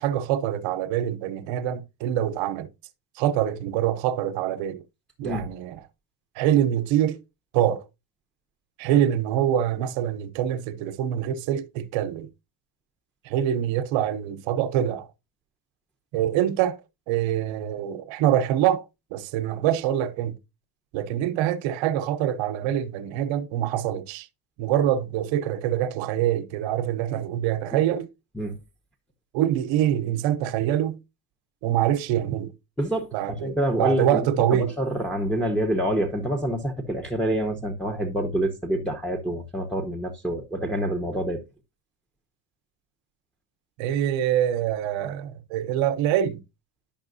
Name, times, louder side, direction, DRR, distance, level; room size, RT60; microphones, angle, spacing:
voice 1, 0.0-2.7 3.1-4.8 5.2-5.8 6.4-7.2 7.5-7.8 8.8-12.3 13.2-15.1 16.1-16.8 17.1-18.9 19.1-20.4 20.9-24.3 24.6-28.1 29.3-31.0 31.6-32.5 33.1-34.7 43.8-46.4, right 11 dB, 85° right, 0.9 m, -25 dB
voice 2, 32.8-33.1 33.4-41.4, right 1 dB, ahead, 0.9 m, -27 dB
10.5 x 5.7 x 2.6 m
cardioid pair, 115°, 44 cm